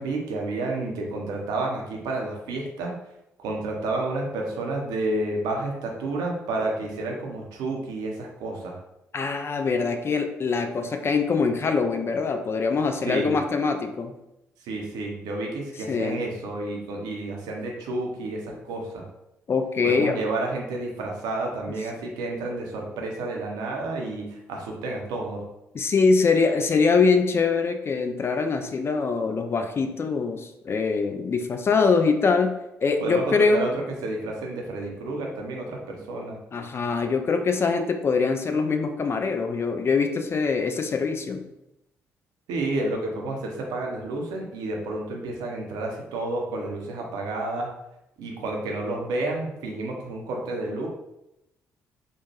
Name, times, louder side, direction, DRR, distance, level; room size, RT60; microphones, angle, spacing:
voice 1, 0.0-2.9 3.4-8.8 13.0-13.4 14.7-19.0 19.8-25.4 33.0-36.4 42.5-47.7 48.2-50.9, right 2 dB, 60° right, 0 dB, 0.6 m, -30 dB
voice 2, 9.1-14.1 15.9-16.2 19.5-20.2 21.7-21.8 25.7-33.7 36.5-41.4, left 4 dB, 35° left, 6 dB, 0.4 m, -23 dB
3.0 x 2.1 x 2.9 m, 0.88 s
figure-of-eight pair, 40°, 8 cm